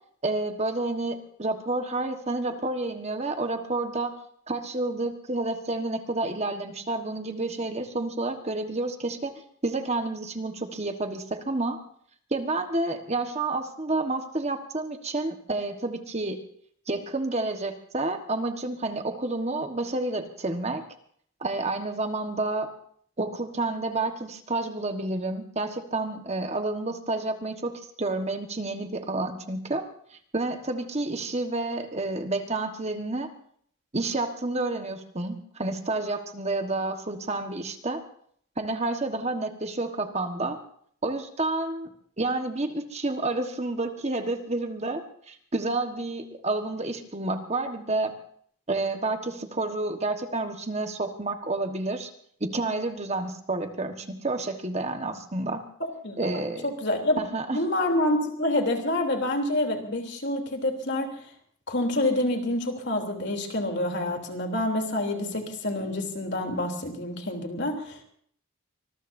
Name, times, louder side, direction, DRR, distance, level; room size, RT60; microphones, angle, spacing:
voice 1, 0.2-4.1 4.5-9.3 9.6-11.8 12.3-16.4 16.9-20.8 21.4-22.7 23.2-27.7 28.0-29.8 30.1-33.3 33.9-38.0 38.6-40.6 41.0-41.9 42.2-48.1 48.7-52.1 52.4-55.6 56.2-56.7 57.2-57.6, right 2 dB, 30° right, 6 dB, 1.4 m, -29 dB
voice 2, 56.0-57.2 57.5-61.2 61.7-68.0, left 1 dB, 50° left, 3 dB, 3.2 m, -27 dB
25.0 x 21.0 x 2.7 m, 0.62 s
head